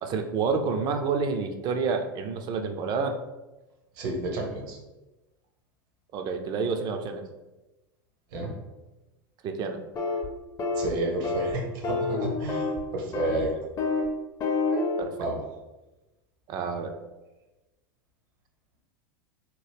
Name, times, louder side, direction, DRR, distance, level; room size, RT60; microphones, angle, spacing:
voice 1, 0.0-3.2 6.1-7.2 9.4-9.8 13.2-13.4 15.0-15.3 16.5-17.0, right 5 dB, 40° right, 6 dB, 0.4 m, -29 dB
voice 2, 4.0-4.8 8.3-8.5 10.7-13.5 15.2-15.4, right 1 dB, 65° right, 1 dB, 0.8 m, -31 dB
sound 1, 9.9-10.3 10.6-10.9 11.2-11.5 11.8-12.8 13.1-13.4 13.8-14.1 14.4-15.0, left 3 dB, 30° left, 0.5 m, -28 dB
2.8 x 2.1 x 3.4 m, 1.1 s
hypercardioid pair, 95°, 11 cm